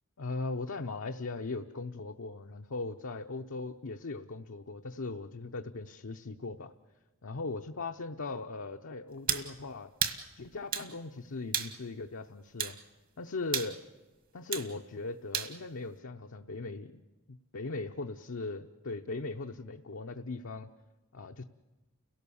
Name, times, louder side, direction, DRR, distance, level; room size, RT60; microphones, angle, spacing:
voice 1, 0.2-6.7 7.2-9.9 10.4-12.8 13.2-13.8 14.3-17.0 17.3-20.7 21.1-21.4, left 3 dB, 65° left, 3 dB, 0.7 m, -39 dB
sound 1, 9.3-9.5 10.0-10.2 10.7-10.9 11.5-11.7 12.6-12.8 13.5-13.7 14.5-14.7 15.3-15.5, right 7 dB, 40° right, 1.5 m, -31 dB
30.0 x 17.5 x 7.0 m, 1.2 s
head